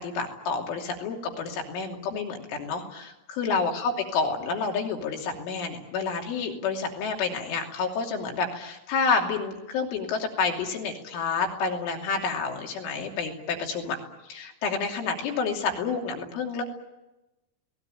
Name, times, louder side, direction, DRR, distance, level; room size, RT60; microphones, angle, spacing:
voice 1, 0.0-14.0 14.2-16.6, left 5 dB, 70° left, 2 dB, 5.2 m, -29 dB
28.5 x 19.0 x 9.1 m, 1.0 s
omnidirectional pair, 5.9 m